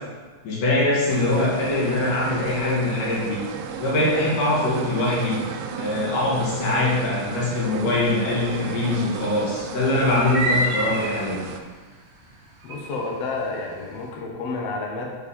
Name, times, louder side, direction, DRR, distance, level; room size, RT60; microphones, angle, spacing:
voice 1, 0.4-3.4 3.8-5.4 5.8-11.4, left 2 dB, 65° left, -6 dB, 3.2 m, -23 dB
sound 1, 1.1-11.6, right 7 dB, 90° right, 2.4 m, -34 dB
sound 2, 8.4-8.7 10.2-11.3 12.7-13.0, right 1 dB, 60° right, 1.6 m, -26 dB
voice 2, 12.6-15.2, left 3 dB, 80° left, 0 dB, 1.4 m, -30 dB
7.0 x 5.1 x 4.2 m, 1.4 s
omnidirectional pair, 4.2 m